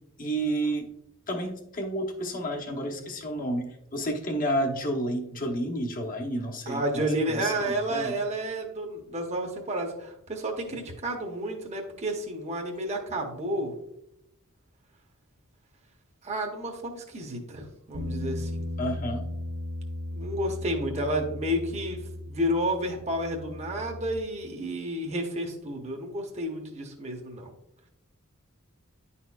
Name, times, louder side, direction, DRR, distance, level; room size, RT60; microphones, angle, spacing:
voice 1, 0.2-0.9 1.3-7.0 7.3-8.1 18.8-19.2, right 1 dB, 40° left, 2 dB, 0.9 m, -30 dB
voice 2, 6.7-13.7 16.2-18.6 20.1-22.0 22.3-27.5, right 1 dB, 30° right, 1 dB, 0.9 m, -31 dB
Bass guitar, 17.9-24.2, left 1 dB, 70° right, 1.1 m, -36 dB
10.5 x 4.3 x 2.3 m, 0.81 s
head